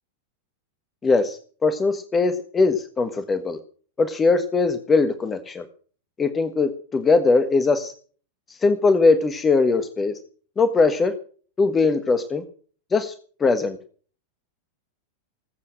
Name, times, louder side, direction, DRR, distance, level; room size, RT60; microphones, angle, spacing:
voice 1, 1.0-3.6 4.0-5.6 6.2-7.9 8.5-10.1 10.6-11.1 11.6-12.4 12.9-13.1 13.4-13.8, left 3 dB, 20° left, 9 dB, 1.6 m, -20 dB
19.5 x 8.6 x 7.6 m, 0.43 s
figure-of-eight pair, 90°, 0 cm